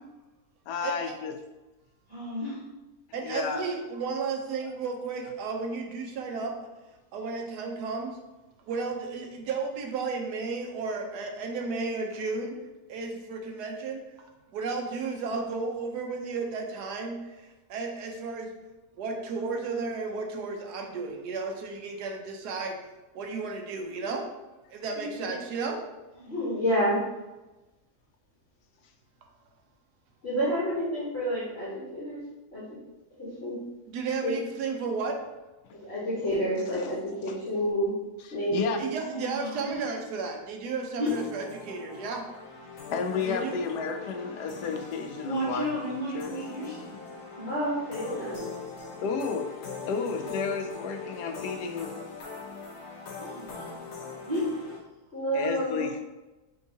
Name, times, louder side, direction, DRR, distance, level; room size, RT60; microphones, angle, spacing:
voice 1, 0.7-1.3 3.2-3.6 35.7-35.8 36.7-36.9 37.3-37.4 38.3-38.8 42.9-45.7 46.1-46.3 49.0-49.5 49.9-51.9 55.3-56.0, left 5 dB, 90° left, 5 dB, 1.2 m, -32 dB
voice 2, 2.1-2.6 3.5-3.7 26.2-26.5 39.0-39.8 41.0-41.1 45.2-46.9 47.4-47.5 48.2-48.3 50.2-50.3 53.2-53.7 54.2-54.5, equal, 55° right, -7 dB, 0.4 m, -33 dB
voice 3, 3.1-6.7 7.1-8.2 8.7-12.6 12.9-14.0 14.5-18.5 19.0-22.8 23.1-24.3 24.7-25.8 33.9-35.2 38.8-42.2 43.3-43.6, right 4 dB, 85° right, 2 dB, 1.2 m, -33 dB
voice 4, 25.0-25.3 26.3-27.0 30.2-32.2 32.5-32.6 33.2-33.5 34.2-34.3 35.7-37.9 38.3-38.9 43.1-43.3 47.5-48.4 55.1-55.8, equal, 45° left, -9 dB, 1.3 m, -29 dB
sound 1, 41.1-54.8, left 5 dB, 60° left, 1.1 m, -41 dB
4.6 x 3.6 x 2.7 m, 1.1 s
omnidirectional pair, 1.7 m